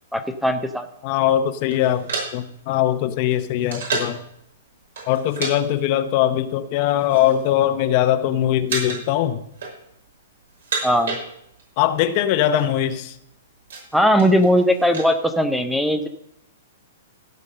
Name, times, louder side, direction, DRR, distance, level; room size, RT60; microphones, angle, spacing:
voice 1, 0.1-0.9 10.8-11.2 13.9-16.1, equal, ahead, 8 dB, 0.6 m, -19 dB
voice 2, 1.0-4.2 5.1-9.4 11.8-13.1, left 11 dB, 35° left, 11 dB, 0.8 m, -21 dB
sound 1, 1.7-4.3 4.9-5.6 5.8-6.0 6.7-7.5 7.8-8.2 8.7-9.2 9.4-10.1 10.5-11.7 12.0-12.1 12.3-12.7 13.2-15.1, right 4 dB, 75° right, 5.7 m, -31 dB
15.5 x 5.2 x 6.6 m, 0.76 s
hypercardioid pair, 160°, 0 cm